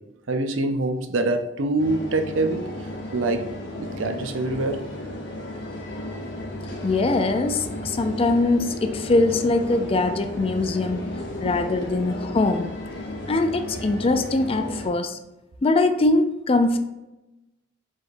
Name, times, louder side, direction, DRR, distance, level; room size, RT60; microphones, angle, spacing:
voice 1, 0.3-2.6 3.1-3.4 3.8-4.8 11.4-11.5, right 2 dB, 75° right, 7 dB, 0.6 m, -24 dB
sound 1, 1.8-14.9, left 1 dB, 65° left, 0.9 m, -34 dB
voice 2, 6.8-11.1 11.4-12.7 13.3-15.2 15.6-16.8, left 2 dB, 30° left, 8 dB, 0.4 m, -22 dB
4.8 x 4.0 x 2.6 m, 0.99 s
head